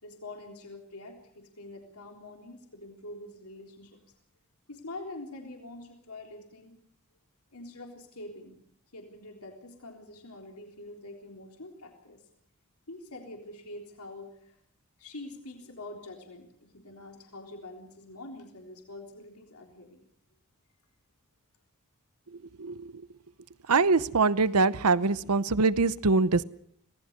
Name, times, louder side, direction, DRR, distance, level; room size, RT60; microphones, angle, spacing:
voice 1, 0.0-4.0 4.7-6.8 7.5-8.6 8.9-12.3 12.9-14.6 15.0-20.0, left 2 dB, 80° left, 3 dB, 3.8 m, -45 dB
voice 2, 22.6-22.9 23.7-26.4, right 4 dB, 80° right, 16 dB, 0.8 m, -23 dB
25.5 x 18.5 x 6.7 m, 0.64 s
head